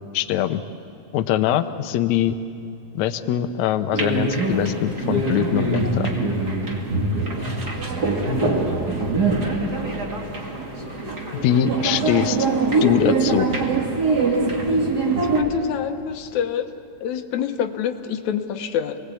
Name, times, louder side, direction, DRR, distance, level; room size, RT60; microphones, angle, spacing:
voice 1, 0.1-0.6 1.1-2.4 2.9-6.1 11.4-12.4 12.8-13.6, left 10 dB, 85° left, 9 dB, 1.5 m, -22 dB
sound 1, 3.9-15.4, right 3 dB, 30° right, 2.5 m, -23 dB
voice 2, 15.4-16.7 17.0-19.0, left 9 dB, 65° left, 6 dB, 2.1 m, -26 dB
28.0 x 20.0 x 8.4 m, 2.7 s
omnidirectional pair, 4.1 m